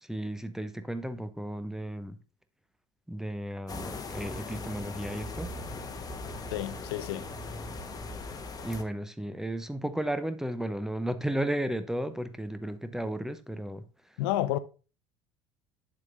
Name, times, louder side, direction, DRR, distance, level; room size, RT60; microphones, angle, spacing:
voice 1, 0.0-2.2 3.1-5.5 8.6-13.9, right 1 dB, 5° right, 0.7 m, -34 dB
sound 1, 3.7-8.8, left 3 dB, 25° left, 1.1 m, -39 dB
voice 2, 6.5-7.3 14.2-14.6, left 14 dB, 60° left, 0.5 m, -30 dB
8.0 x 7.4 x 2.6 m
figure-of-eight pair, 60°, 14 cm